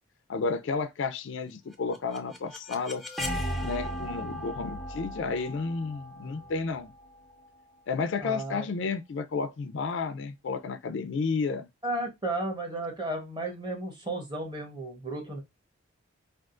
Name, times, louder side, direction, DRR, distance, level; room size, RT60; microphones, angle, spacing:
voice 1, 0.3-3.0 3.6-6.9 7.9-11.7, left 4 dB, 60° left, 0.4 m, -32 dB
sound 1, 1.7-7.6, equal, ahead, 0.5 m, -37 dB
voice 2, 8.2-8.7 11.8-15.4, right 2 dB, 20° right, 1.0 m, -34 dB
3.6 x 2.4 x 2.4 m
head